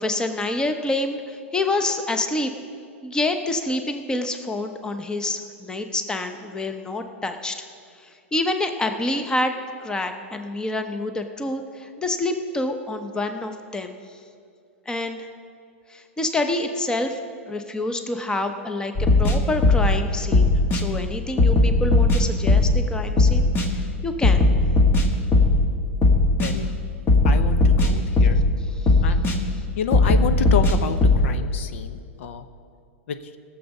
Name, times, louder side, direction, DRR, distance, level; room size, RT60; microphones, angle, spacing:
voice 1, 0.0-2.5 3.0-7.6 8.0-9.5 9.8-13.9 14.9-15.3 15.9-17.2 17.5-24.4 28.8-28.9, left 2 dB, 10° left, 7 dB, 0.9 m, -27 dB
sound 1, 19.0-20.0 20.3-20.8 21.4-22.8 23.2-23.7 24.2-25.7 26.0-26.5 27.1-28.5 28.9-29.4 29.9-31.3, left 2 dB, 30° left, 1.5 m, -17 dB
voice 2, 27.2-28.4 29.0-29.2 29.8-32.5 33.1-33.2, left 7 dB, 65° left, 10 dB, 0.7 m, -29 dB
18.0 x 7.1 x 5.4 m, 2.3 s
hypercardioid pair, 110°, 7 cm